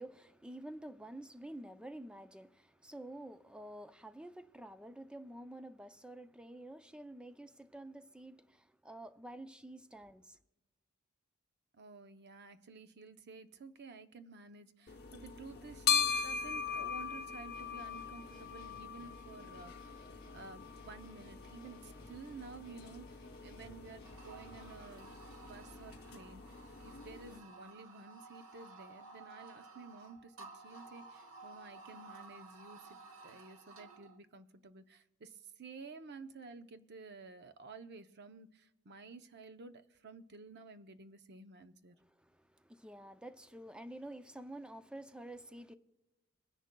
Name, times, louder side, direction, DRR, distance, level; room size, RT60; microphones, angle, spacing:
voice 1, 0.0-10.4 42.0-45.7, right 1 dB, 5° right, 0.4 m, -49 dB
voice 2, 11.7-20.1 20.3-42.0, right 4 dB, 50° right, 0.6 m, -52 dB
sound 1, 14.9-27.4, left 7 dB, 50° left, 0.9 m, -40 dB
sound 2, 17.5-25.3, left 1 dB, 25° left, 2.7 m, -62 dB
sound 3, 24.0-34.2, right 3 dB, 70° right, 1.1 m, -54 dB
23.5 x 10.5 x 2.2 m
head